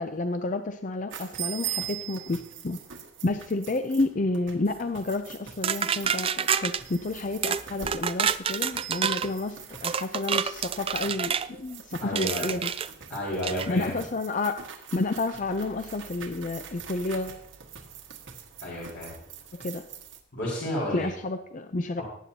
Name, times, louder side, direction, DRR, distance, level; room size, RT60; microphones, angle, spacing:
voice 1, 0.0-2.8 3.2-12.7 13.7-14.6 14.9-17.4 19.5-19.9 20.9-22.0, left 2 dB, 40° left, 8 dB, 0.5 m, -30 dB
sound 1, 1.1-20.2, right 9 dB, 90° right, 1.6 m, -42 dB
sound 2, 5.6-6.8 7.4-7.6 7.9-9.3 9.8-11.5 12.2-12.9 13.4-13.7, right 8 dB, 30° right, 0.4 m, -28 dB
voice 2, 12.0-12.5 13.1-13.9 18.6-19.1 20.3-21.1 22.0-22.1, equal, 60° left, -7 dB, 4.5 m, -31 dB
18.5 x 9.3 x 2.8 m, 0.67 s
head